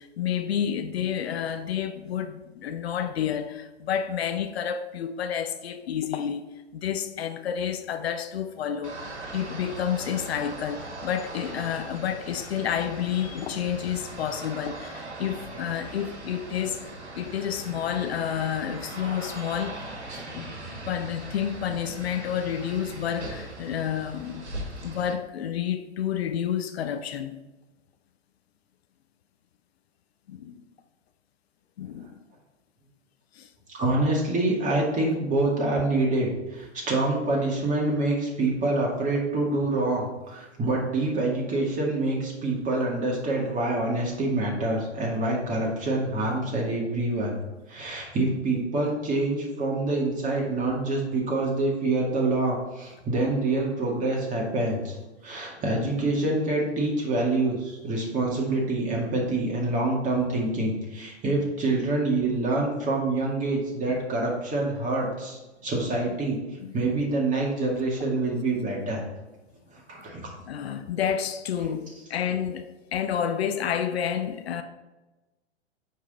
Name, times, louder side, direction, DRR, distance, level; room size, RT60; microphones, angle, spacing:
voice 1, 0.0-6.4 6.7-16.9 17.1-20.5 20.9-24.5 24.8-27.4 30.3-30.6 31.8-32.2 33.3-33.5 66.6-66.7 70.4-74.6, left 9 dB, 65° left, 0.7 m, -30 dB
sound 1, 8.8-25.1, right 2 dB, 75° right, 1.7 m, -40 dB
voice 2, 33.7-47.4 47.7-55.0 55.2-66.4 66.7-69.0 69.9-70.3, right 2 dB, 20° right, 2.1 m, -26 dB
9.4 x 3.8 x 4.2 m
figure-of-eight pair, 105°, 34 cm